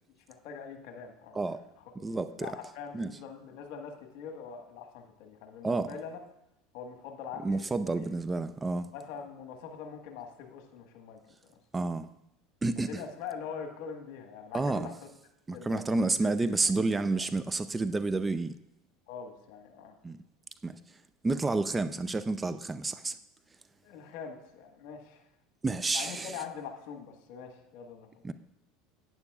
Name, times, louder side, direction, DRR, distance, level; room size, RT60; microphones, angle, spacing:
voice 1, 0.3-1.6 2.3-6.2 6.7-8.0 8.9-11.5 12.8-14.9 15.5-16.6 17.1-17.3 19.1-19.9 23.8-25.2 25.9-28.1, left 6 dB, 65° left, 4 dB, 1.4 m, -43 dB
voice 2, 2.0-2.5 2.9-3.1 5.6-6.0 7.4-8.9 11.7-12.1 12.6-13.0 14.5-14.9 15.5-18.5 20.0-20.2 20.6-20.8 21.2-23.2 25.6-26.3 28.2-28.3, right 3 dB, 15° right, 12 dB, 0.4 m, -30 dB
11.0 x 9.5 x 2.4 m, 0.85 s
supercardioid pair, 95°, 0 cm